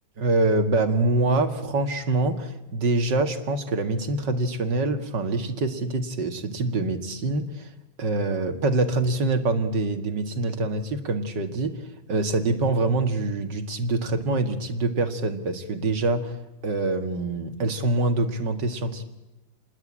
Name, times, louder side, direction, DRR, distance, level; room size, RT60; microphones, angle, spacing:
voice 1, 0.2-7.7 8.0-11.8 12.1-16.4 16.6-19.0, right 2 dB, 60° right, 7 dB, 2.5 m, -25 dB
29.0 x 21.0 x 8.7 m, 1.0 s
omnidirectional pair, 2.2 m